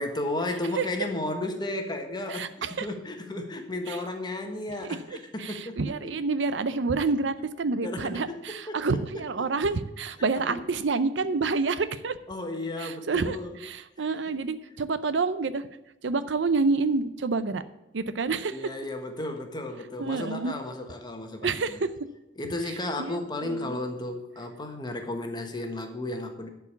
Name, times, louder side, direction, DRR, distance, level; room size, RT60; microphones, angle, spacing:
voice 1, 0.0-6.2 7.8-9.5 10.3-10.6 12.3-13.6 14.0-14.4 18.5-21.8 22.4-26.5, left 2 dB, 25° left, 5 dB, 1.3 m, -34 dB
voice 2, 2.3-2.9 3.9-4.0 5.1-12.2 12.8-13.4 13.6-15.7 16.0-17.6 17.9-18.6 20.0-20.5 21.4-21.9 23.0-23.8, right 4 dB, 75° right, 13 dB, 0.6 m, -28 dB
10.5 x 4.9 x 8.2 m, 0.95 s
head